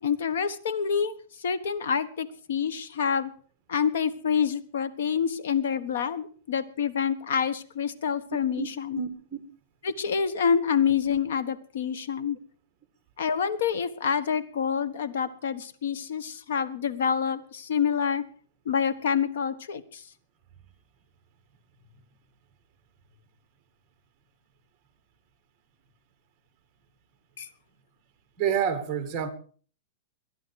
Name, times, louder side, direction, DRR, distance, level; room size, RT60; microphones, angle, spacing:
voice 1, 0.0-3.3 3.7-9.0 9.8-12.4 13.2-18.2 18.6-20.0 27.4-27.5, left 7 dB, 70° left, 15 dB, 1.4 m, -27 dB
voice 2, 8.9-9.4 28.4-29.3, right 8 dB, 20° right, 9 dB, 1.8 m, -28 dB
22.5 x 10.5 x 4.8 m, 0.42 s
supercardioid pair, 175°, 0 cm